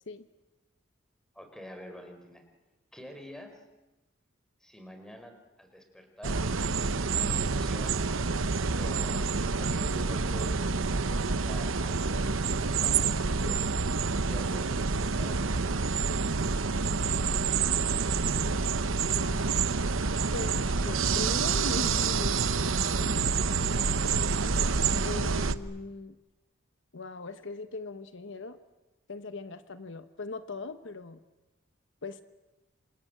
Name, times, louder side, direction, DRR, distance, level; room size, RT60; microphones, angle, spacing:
voice 1, 1.3-2.4 2.9-3.6 4.6-8.0 8.7-12.3 12.6-13.6 14.2-15.8 24.3-24.4, equal, 5° left, 5 dB, 4.4 m, -48 dB
sound 1, 6.2-25.6, right 4 dB, 75° right, 1.0 m, -28 dB
voice 2, 19.1-19.7 20.3-23.1 25.0-26.1 26.9-28.6 29.1-31.2 32.0-32.2, left 3 dB, 65° left, 10 dB, 1.1 m, -40 dB
27.5 x 27.0 x 7.7 m, 1.1 s
head